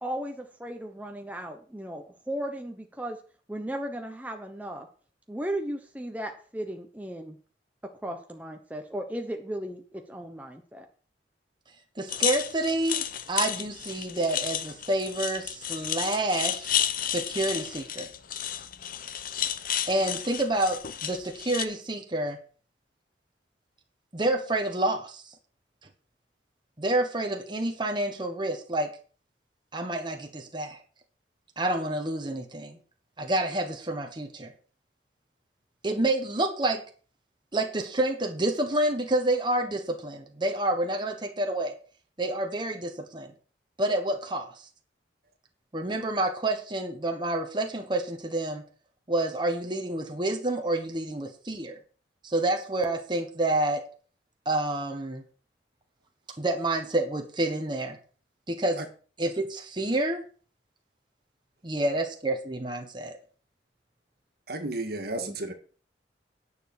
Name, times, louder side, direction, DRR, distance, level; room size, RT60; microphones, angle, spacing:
voice 1, 0.0-3.2 3.5-4.9 5.3-7.4 7.8-10.9 65.2-65.4, right 1 dB, 10° right, 3 dB, 0.9 m, -36 dB
voice 2, 12.0-16.8 17.0-18.1 19.9-22.4 24.1-25.3 26.8-28.9 29.7-30.8 31.6-32.8 33.2-34.5 35.8-36.8 37.5-41.7 42.2-43.3 43.8-44.7 45.7-48.6 49.1-51.8 52.2-53.8 54.4-55.2 56.4-58.0 58.5-58.8 59.2-60.2 61.6-63.2, right 1 dB, 25° right, 3 dB, 1.3 m, -28 dB
sound 1, 12.1-21.7, left 10 dB, 50° left, 0.8 m, -32 dB
voice 3, 64.5-65.5, right 2 dB, 55° right, 5 dB, 2.0 m, -33 dB
10.0 x 7.0 x 6.4 m, 0.41 s
head